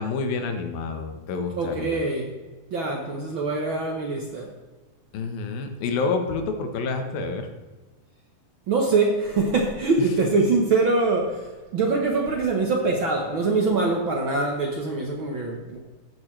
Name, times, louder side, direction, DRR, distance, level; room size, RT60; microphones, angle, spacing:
voice 1, 0.0-2.0 5.1-7.5, left 4 dB, 80° left, 6 dB, 2.9 m, -28 dB
voice 2, 1.6-2.3 2.7-4.5 8.7-15.8, right 3 dB, 80° right, 0 dB, 1.1 m, -24 dB
15.0 x 9.5 x 3.3 m, 1.2 s
omnidirectional pair, 4.1 m